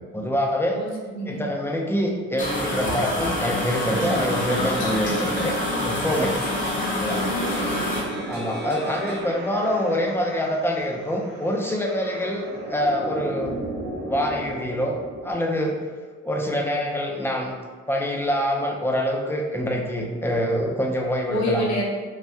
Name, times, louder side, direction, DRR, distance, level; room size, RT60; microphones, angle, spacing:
voice 1, 0.1-0.8 1.3-5.5 5.8-6.3 6.9-7.2 8.3-13.6 14.1-15.0 15.2-15.8 16.2-17.5 17.9-21.6, equal, 10° left, -1 dB, 0.5 m, -25 dB
voice 2, 0.7-1.4 7.3-7.9 21.3-21.8, equal, 65° left, -2 dB, 0.8 m, -28 dB
sound 1, 2.4-8.0, left 1 dB, 25° left, 0.8 m, -26 dB
sound 2, 3.6-15.3, right 1 dB, 90° right, 0.8 m, -36 dB
sound 3, 3.9-9.2, right 1 dB, 35° right, 0.7 m, -38 dB
3.4 x 2.2 x 2.7 m, 1.4 s
cardioid pair, 90°, 30 cm